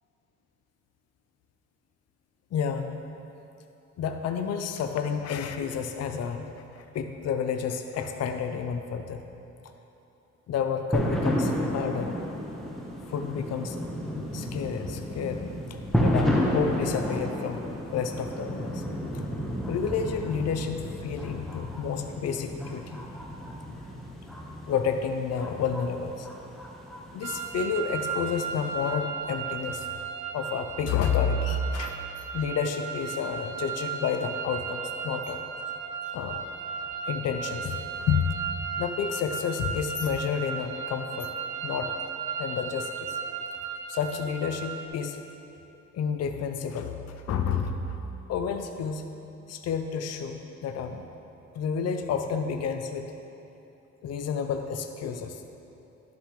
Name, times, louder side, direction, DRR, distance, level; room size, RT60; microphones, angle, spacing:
voice 1, 2.5-3.0 4.0-9.2 10.5-12.2 13.1-13.8 14.3-17.6 17.9-18.8 19.1-19.2 19.7-23.0 24.7-26.3 27.1-29.9 30.3-32.1 32.3-35.5 36.1-36.4 37.1-38.4 38.8-41.3 41.6-41.9 42.4-43.2 43.9-45.2 45.9-48.0 48.3-49.1 49.5-51.1 51.5-53.2 54.0-55.4, left 6 dB, 55° left, 6 dB, 0.6 m, -30 dB
sound 1, 10.9-28.9, equal, ahead, 1.2 m, -32 dB
sound 2, 27.2-44.9, right 6 dB, 85° right, 0.6 m, -35 dB
11.5 x 7.0 x 3.2 m, 2.8 s
cardioid pair, 90°, 30 cm